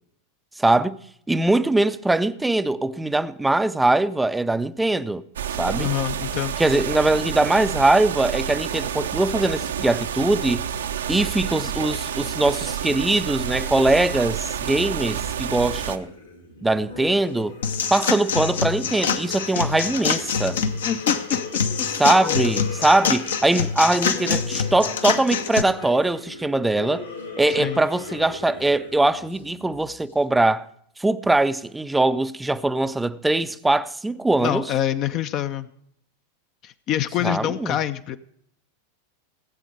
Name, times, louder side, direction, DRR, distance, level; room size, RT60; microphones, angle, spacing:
voice 1, 0.6-1.0 1.3-5.2 5.6-5.9 6.6-10.7 11.1-16.1 16.6-17.6 17.9-20.6 22.0-27.0 27.4-30.7 31.0-34.6 37.2-37.8, right 2 dB, 5° right, 0.5 m, -21 dB
sound 1, 5.4-16.0, right 8 dB, 65° right, 0.7 m, -29 dB
voice 2, 5.8-6.6 20.9-21.4 27.6-27.8 34.4-35.7 36.6-38.2, left 11 dB, 35° left, 0.5 m, -26 dB
sound 2, 15.2-30.1, left 3 dB, 90° left, 3.4 m, -38 dB
sound 3, 17.6-25.6, left 6 dB, 65° left, 0.9 m, -25 dB
17.5 x 8.1 x 4.9 m
figure-of-eight pair, 90°, 0 cm